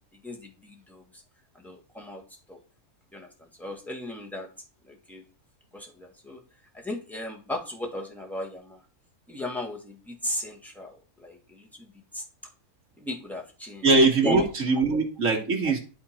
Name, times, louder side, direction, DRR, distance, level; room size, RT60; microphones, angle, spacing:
voice 1, 0.2-1.2 1.5-2.2 2.5-2.6 3.1-4.5 4.9-5.2 5.7-6.4 6.7-8.8 9.3-12.2 13.0-13.9 14.2-14.5, left 1 dB, ahead, 1 dB, 1.4 m, -36 dB
voice 2, 13.8-15.8, right 3 dB, 60° right, 2 dB, 2.1 m, -22 dB
11.0 x 3.7 x 4.3 m, 0.36 s
omnidirectional pair, 1.6 m